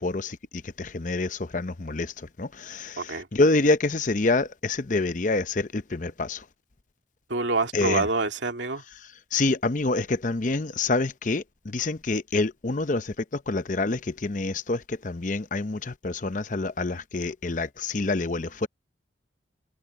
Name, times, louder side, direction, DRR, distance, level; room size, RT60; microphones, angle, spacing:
voice 1, 0.0-6.4 7.7-8.0 9.3-18.7, left 3 dB, 45° left, 0.7 m, -27 dB
voice 2, 3.0-3.3 7.3-8.8, right 3 dB, 80° right, 2.5 m, -26 dB
head